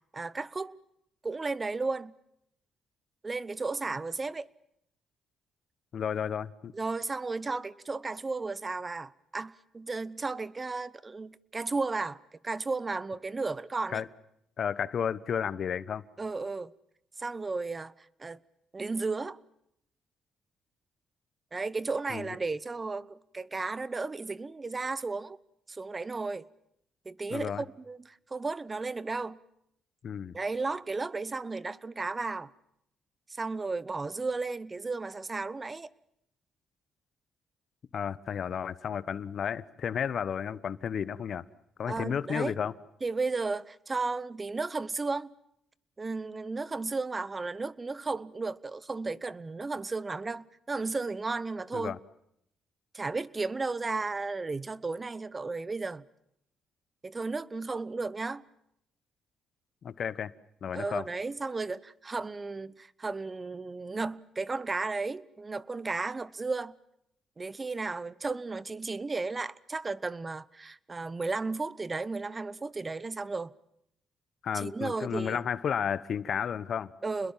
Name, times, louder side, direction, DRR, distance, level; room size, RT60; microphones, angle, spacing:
voice 1, 0.1-0.8 1.2-2.1 3.2-4.5 6.7-14.0 16.2-16.7 17.2-17.9 18.2-18.4 18.7-19.4 21.5-25.4 25.7-26.4 27.0-29.4 30.3-32.5 33.4-35.9 41.9-42.5 43.0-45.3 46.0-52.0 52.9-56.0 57.0-58.4 60.7-66.7 67.4-73.5 74.5-75.4 77.0-77.3, right 3 dB, 25° right, 0.9 m, -34 dB
voice 2, 5.9-6.7 13.9-14.1 14.6-16.0 22.1-22.4 27.3-27.6 30.0-30.3 37.9-41.4 41.8-42.7 51.7-52.0 59.8-60.3 60.6-61.1 74.4-76.9, left 8 dB, 55° left, 1.1 m, -32 dB
29.5 x 21.5 x 7.5 m
cardioid pair, 90°, 0 cm